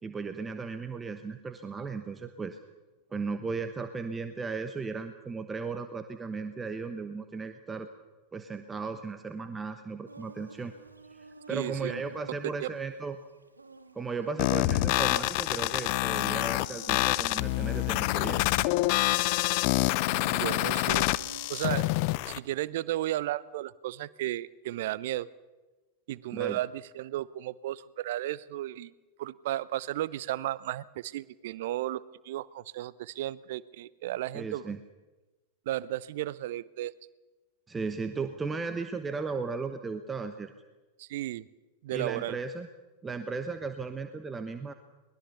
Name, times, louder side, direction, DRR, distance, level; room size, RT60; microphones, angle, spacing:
voice 1, 0.0-2.6 3.1-7.9 8.3-10.7 11.1-13.2 13.9-18.5 26.3-26.6 34.3-34.8 37.7-40.5 41.9-42.7 43.0-44.7, right 4 dB, 15° right, 9 dB, 1.1 m, -36 dB
Insect, 10.1-21.8, right 3 dB, 80° right, 1.7 m, -52 dB
voice 2, 11.5-12.0 12.6-12.7 20.1-21.1 21.5-21.9 22.2-25.3 26.1-28.9 29.2-34.7 35.7-36.9 41.0-41.5 41.8-42.4, right 14 dB, 55° right, 21 dB, 0.7 m, -34 dB
sound 1, 14.4-22.4, left 19 dB, 45° left, 0.6 m, -27 dB
22.5 x 20.5 x 6.9 m, 1.2 s
figure-of-eight pair, 90°, 0 cm